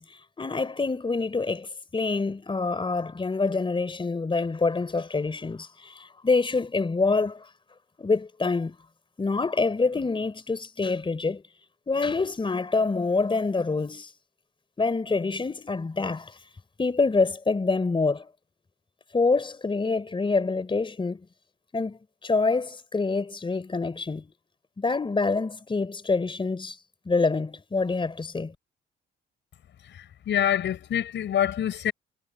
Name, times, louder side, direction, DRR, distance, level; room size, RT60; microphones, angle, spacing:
voice 1, 0.0-7.5 8.0-8.8 9.2-11.4 11.9-14.1 14.8-16.4 16.8-18.3 19.1-21.2 21.7-24.3 24.8-26.8 27.1-28.5, left 3 dB, 25° left, 3.9 m, -26 dB
voice 2, 30.3-31.9, left 10 dB, 65° left, 6.2 m, -25 dB
cardioid pair, 90°, 20 cm